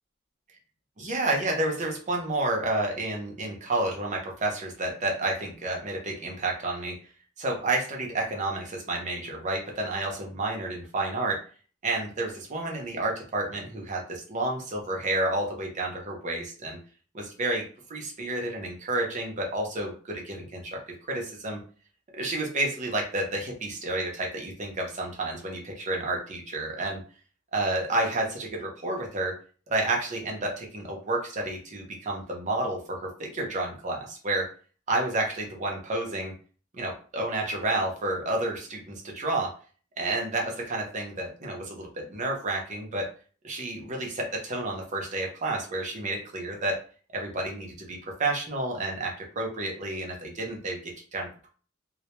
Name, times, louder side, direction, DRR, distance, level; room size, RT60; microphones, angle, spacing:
voice 1, 1.0-6.9 7.4-11.4 11.8-16.8 17.1-17.6 17.9-20.8 21.1-21.6 22.1-27.0 27.5-29.3 29.7-34.5 34.9-36.3 36.7-39.5 40.0-43.1 43.4-46.8 47.1-51.5, right 2 dB, 35° right, 0 dB, 0.6 m, -30 dB
2.2 x 2.1 x 2.9 m, 0.40 s
head